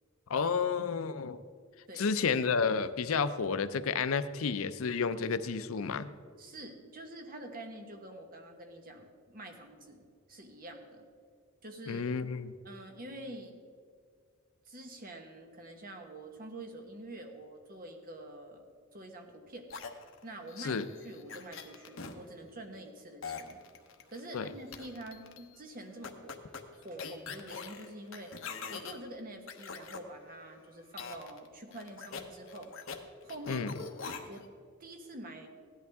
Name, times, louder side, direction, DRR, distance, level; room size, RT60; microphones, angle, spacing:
voice 1, 0.3-1.4 2.0-6.1 11.9-12.5 20.6-20.9 24.3-24.5 33.5-33.7, left 5 dB, 80° left, 13 dB, 0.5 m, -31 dB
voice 2, 6.4-10.0 10.3-11.0 11.6-12.0 12.6-13.6 14.7-18.7 18.9-19.7 20.2-23.6 24.1-26.4 26.7-28.4 28.7-32.7 33.2-33.6 34.2-34.5 34.8-35.5, right 1 dB, 45° right, 4 dB, 1.3 m, -46 dB
sound 1, 19.7-22.1 23.2-24.4 24.7-25.4 26.0-28.9 29.5-30.0 31.0-31.5 31.7-33.0 33.3-34.4, left 5 dB, 65° left, 1.0 m, -43 dB
16.5 x 11.0 x 3.6 m, 2.1 s
head